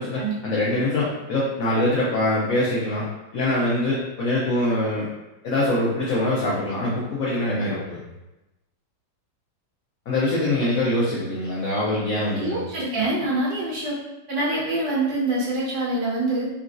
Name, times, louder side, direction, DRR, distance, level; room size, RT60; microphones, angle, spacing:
voice 1, 0.0-3.1 3.3-5.1 5.4-8.0 10.1-12.6, left 1 dB, 65° left, -6 dB, 0.9 m, -24 dB
voice 2, 12.3-14.0 14.3-16.5, right 2 dB, 75° right, -7 dB, 1.7 m, -25 dB
3.8 x 2.4 x 2.5 m, 0.99 s
omnidirectional pair, 2.0 m